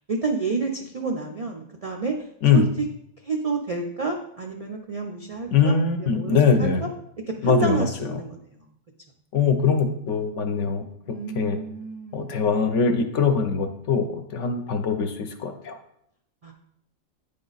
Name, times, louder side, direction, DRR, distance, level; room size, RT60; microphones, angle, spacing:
voice 1, 0.1-2.2 2.5-2.9 3.2-6.9 7.3-8.6 11.0-12.5 16.4-16.5, right 4 dB, 55° right, 3 dB, 0.4 m, -29 dB
voice 2, 5.5-6.8 7.4-7.9 9.3-10.8 11.3-11.6 12.1-15.8, left 5 dB, 70° left, 6 dB, 1.1 m, -22 dB
9.2 x 3.7 x 4.0 m, 0.76 s
omnidirectional pair, 1.3 m